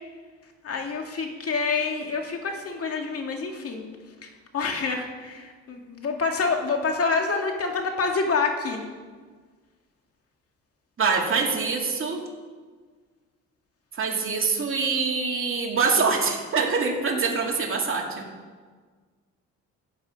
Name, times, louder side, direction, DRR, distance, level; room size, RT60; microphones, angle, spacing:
voice 1, 0.6-3.8 4.2-8.8, left 4 dB, 50° left, 3 dB, 2.1 m, -27 dB
voice 2, 11.0-12.2 14.0-18.3, right 4 dB, 45° right, 0 dB, 2.5 m, -24 dB
14.5 x 8.7 x 5.3 m, 1.5 s
cardioid pair, 90°, 30 cm